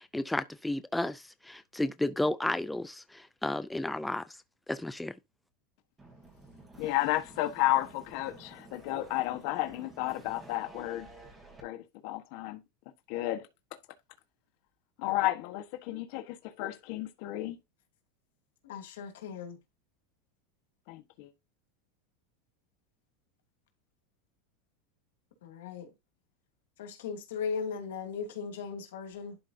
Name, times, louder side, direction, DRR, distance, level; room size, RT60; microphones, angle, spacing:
voice 1, 0.0-4.4 4.7-5.1, left 1 dB, 5° left, 0.4 m, -33 dB
sound 1, 6.0-11.6, right 2 dB, 15° right, 3.0 m, -52 dB
voice 2, 6.8-11.1 11.6-12.6 13.1-13.5 15.0-17.6 20.9-21.3, left 16 dB, 60° left, 1.3 m, -32 dB
voice 3, 18.6-19.6 25.4-25.9 26.8-29.4, left 6 dB, 90° left, 2.5 m, -37 dB
11.5 x 4.9 x 2.8 m
supercardioid pair, 140°, 0 cm